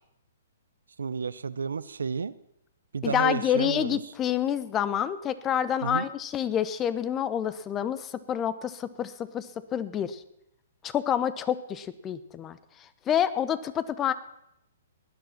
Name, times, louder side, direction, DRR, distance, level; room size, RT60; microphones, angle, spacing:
voice 1, 1.0-2.3 2.9-4.0 5.8-6.1, right 5 dB, 80° right, 16 dB, 0.7 m, -31 dB
voice 2, 3.0-10.2 10.8-12.6 13.1-14.1, left 9 dB, 20° left, 15 dB, 1.0 m, -28 dB
18.5 x 10.0 x 5.9 m, 0.78 s
hypercardioid pair, 130°, 0 cm